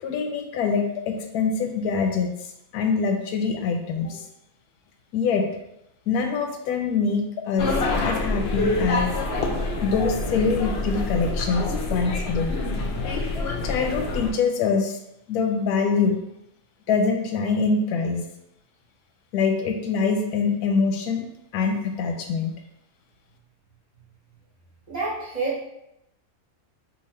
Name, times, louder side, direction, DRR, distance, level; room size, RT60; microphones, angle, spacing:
voice 1, 0.0-4.3 5.1-5.5 6.1-9.1 9.8-12.5 13.6-15.0 15.3-16.2 16.9-18.2 19.3-21.3 21.5-22.5, left 5 dB, 85° left, 4 dB, 1.1 m, -24 dB
sound 1, 7.6-14.3, left 2 dB, 70° left, 0.6 m, -26 dB
voice 2, 24.9-25.6, right 3 dB, 35° right, -7 dB, 0.8 m, -28 dB
2.9 x 2.5 x 4.3 m, 0.84 s
omnidirectional pair, 1.6 m